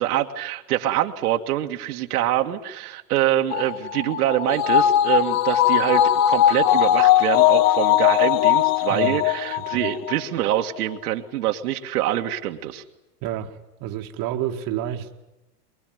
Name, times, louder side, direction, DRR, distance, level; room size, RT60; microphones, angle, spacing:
voice 1, 0.0-12.8, right 12 dB, 75° right, 3 dB, 1.9 m, -25 dB
sound 1, 3.5-10.2 10.5-10.6, left 12 dB, 55° left, 1.2 m, -19 dB
voice 2, 8.9-9.2 9.6-9.9 13.2-15.1, right 11 dB, 45° right, 4 dB, 1.9 m, -30 dB
24.0 x 22.0 x 9.3 m, 0.99 s
hypercardioid pair, 115°, 46 cm